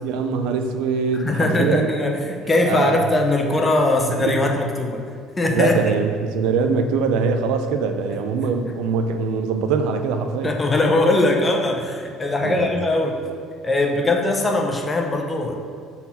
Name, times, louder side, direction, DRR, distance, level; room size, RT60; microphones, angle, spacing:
voice 1, 0.0-1.9 2.7-3.0 4.2-4.4 5.5-10.5 12.4-12.7, right 5 dB, 80° right, 6 dB, 0.5 m, -22 dB
voice 2, 1.2-5.0 5.4-5.7 10.4-13.2 13.6-15.5, left 2 dB, 15° left, 2 dB, 0.6 m, -20 dB
4.1 x 4.1 x 5.5 m, 2.2 s
cardioid pair, 140°, 0 cm